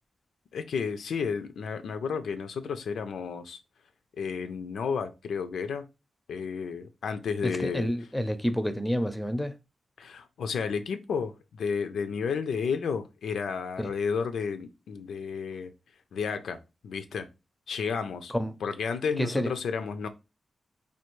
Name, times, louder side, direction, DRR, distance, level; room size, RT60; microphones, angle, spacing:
voice 1, 0.5-3.6 4.2-5.9 6.3-7.9 10.0-15.7 16.1-16.6 16.8-17.3 17.7-18.3 18.6-20.1, left 6 dB, 85° left, 0.4 m, -32 dB
voice 2, 7.4-9.6 13.8-13.9 18.3-18.6 19.2-19.5, equal, 5° left, 0.5 m, -29 dB
3.3 x 2.3 x 3.0 m
cardioid pair, 70°, 0 cm